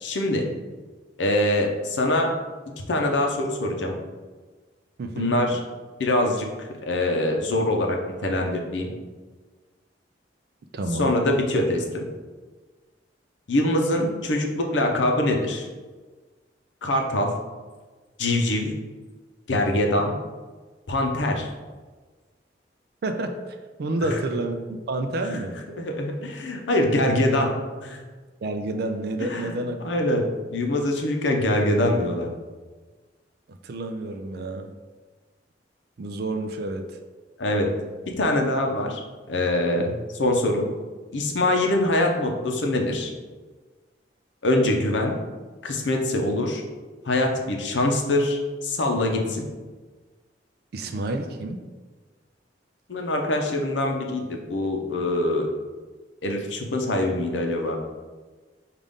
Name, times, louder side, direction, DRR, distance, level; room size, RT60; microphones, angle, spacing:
voice 1, 0.0-0.5 1.2-2.3 2.9-3.9 5.1-5.6 6.0-8.9 11.0-12.0 13.5-15.7 16.8-17.3 18.2-18.7 19.5-20.1 20.9-21.5 24.1-24.2 25.7-27.5 27.8-28.0 29.3-30.3 30.5-32.3 34.4-34.5 37.4-37.7 38.2-39.0 39.3-39.9 40.2-40.6 41.1-43.1 44.4-45.2 45.6-46.6 47.0-49.4 52.9-55.5 56.2-57.8, left 1 dB, 85° left, 2 dB, 0.6 m, -24 dB
voice 2, 5.0-5.6 10.7-11.1 23.0-25.6 28.4-29.8 33.5-34.7 36.0-37.0 39.8-39.9 50.7-51.6, right 2 dB, 60° right, 5 dB, 0.4 m, -29 dB
5.2 x 2.5 x 3.5 m, 1.3 s
head